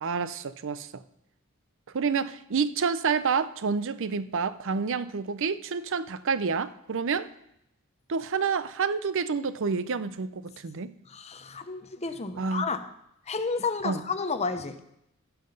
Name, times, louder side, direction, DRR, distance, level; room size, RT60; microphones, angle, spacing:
voice 1, 0.0-0.9 1.9-7.3 8.1-10.9 12.4-12.6 13.8-14.0, right 5 dB, 60° right, 15 dB, 0.5 m, -28 dB
voice 2, 11.1-12.9 13.3-14.8, left 4 dB, 30° left, 9 dB, 0.8 m, -31 dB
16.0 x 5.9 x 5.4 m, 0.80 s
head